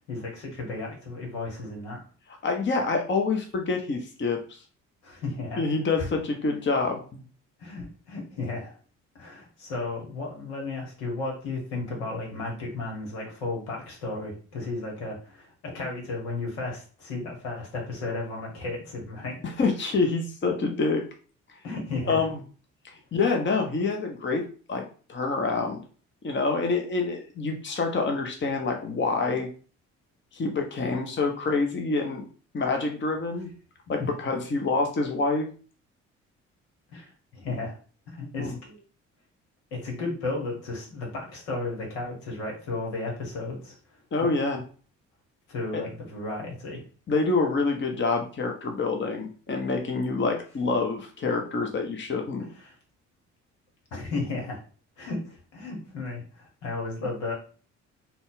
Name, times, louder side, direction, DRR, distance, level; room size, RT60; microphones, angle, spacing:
voice 1, 0.0-2.0 5.0-5.6 6.0-6.1 7.6-8.7 9.1-19.4 21.6-22.2 36.9-37.0 37.3-37.7 38.1-38.8 39.7-43.7 44.2-44.3 45.5-46.8 52.6-52.7 53.9-54.6 55.0-57.3, left 3 dB, 75° left, -1 dB, 1.3 m, -34 dB
voice 2, 2.4-4.6 5.6-7.2 19.4-21.0 22.1-22.4 23.1-24.4 24.7-24.8 25.1-25.8 26.2-29.5 30.3-32.2 32.5-33.5 33.9-35.5 38.4-38.5 44.1-44.6 45.7-45.8 47.1-52.5, left 3 dB, 30° left, 3 dB, 0.9 m, -26 dB
3.8 x 2.3 x 3.8 m, 0.39 s
hypercardioid pair, 45°, 37 cm